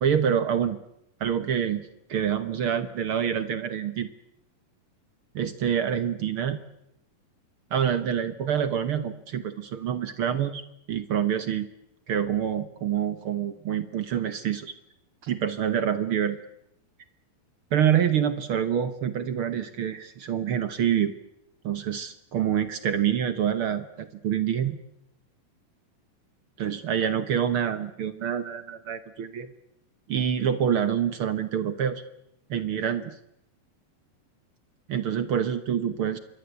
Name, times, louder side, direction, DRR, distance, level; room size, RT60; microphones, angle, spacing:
voice 1, 0.0-0.8 1.2-4.1 5.3-6.6 7.7-10.6 10.9-11.7 12.1-14.7 15.2-16.4 17.7-21.1 21.6-24.8 26.6-29.5 30.1-32.0 32.5-33.2 34.9-36.2, right 9 dB, 65° right, 12 dB, 1.3 m, -26 dB
27.5 x 22.5 x 8.2 m, 0.82 s
omnidirectional pair, 4.0 m